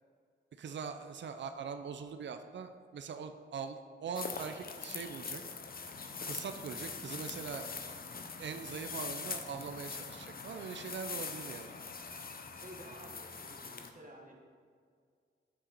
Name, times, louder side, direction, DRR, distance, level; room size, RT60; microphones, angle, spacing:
voice 1, 0.6-5.4 6.2-7.7 8.4-11.7, right 6 dB, 65° right, 8 dB, 0.5 m, -42 dB
sound 1, 4.1-13.9, left 5 dB, 50° left, 0.7 m, -43 dB
voice 2, 12.5-14.4, right 1 dB, 40° right, 0 dB, 1.3 m, -52 dB
8.5 x 5.7 x 4.0 m, 2.1 s
cardioid pair, 65°, 20 cm